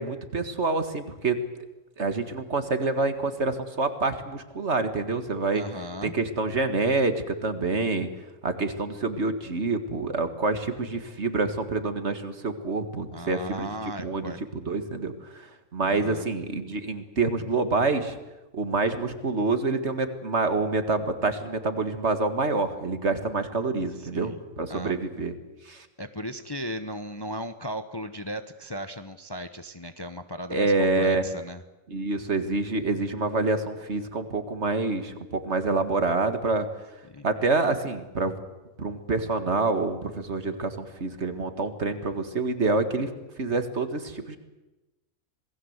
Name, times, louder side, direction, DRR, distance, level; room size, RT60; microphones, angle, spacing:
voice 1, 0.0-1.4 2.0-5.6 6.0-8.1 8.4-13.8 14.0-18.2 18.5-25.3 25.7-25.9 30.5-31.2 31.9-36.7 37.2-38.4 38.8-43.1 43.4-44.4, right 3 dB, 50° right, 9 dB, 2.1 m, -27 dB
voice 2, 5.5-6.2 13.1-14.4 15.9-16.3 24.0-24.4 24.7-24.9 26.0-31.6 37.1-37.3, equal, 20° left, 9 dB, 0.9 m, -36 dB
27.5 x 19.5 x 8.1 m, 1.1 s
omnidirectional pair, 1.5 m